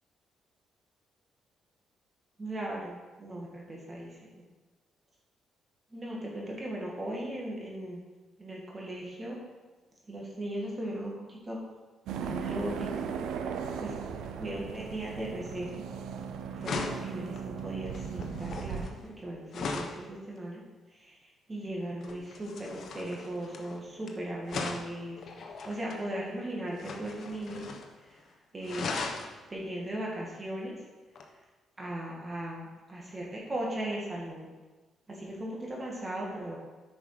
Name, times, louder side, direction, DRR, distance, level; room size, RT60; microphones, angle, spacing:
voice 1, 2.4-4.2 5.9-8.0 8.4-9.4 10.1-11.6 12.2-12.9 13.8-13.9 14.4-15.8 16.5-20.6 20.9-21.2 21.5-27.7 28.1-28.2 28.5-28.9 29.5-30.7 31.8-34.5 35.1-36.6, right 1 dB, 25° right, -3 dB, 2.1 m, -37 dB
sound 1, 12.1-18.9, right 6 dB, 85° right, 0.7 m, -37 dB
sound 2, 16.0-16.2 16.6-20.0 22.0-24.1 24.5-26.0 26.7-27.9 28.2-28.3 28.6-29.3 31.2-31.3, left 4 dB, 60° left, 1.1 m, -38 dB
9.2 x 5.5 x 5.0 m, 1.2 s
cardioid pair, 90°, 0 cm